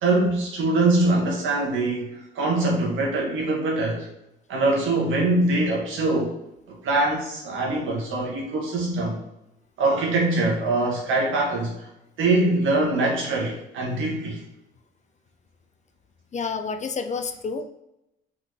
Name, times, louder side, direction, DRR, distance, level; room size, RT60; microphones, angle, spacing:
voice 1, 0.0-4.1 4.5-6.3 6.7-9.2 9.8-11.9 12.2-14.4, right 2 dB, 80° right, -2 dB, 1.6 m, -23 dB
voice 2, 16.3-17.6, left 5 dB, 35° left, 7 dB, 0.5 m, -29 dB
4.0 x 3.6 x 3.2 m, 0.87 s
cardioid pair, 90°, 20 cm